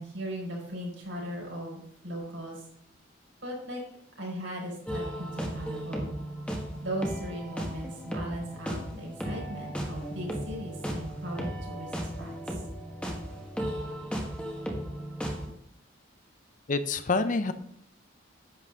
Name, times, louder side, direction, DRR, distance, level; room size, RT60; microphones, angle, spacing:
voice 1, 0.0-2.6 3.4-3.8 4.2-6.1 6.8-12.6, right 1 dB, 70° right, -2 dB, 4.5 m, -38 dB
sound 1, 4.9-15.5, equal, 5° left, 1.4 m, -36 dB
voice 2, 16.7-17.5, left 3 dB, 40° left, 11 dB, 0.6 m, -27 dB
10.5 x 8.0 x 3.7 m, 0.71 s
head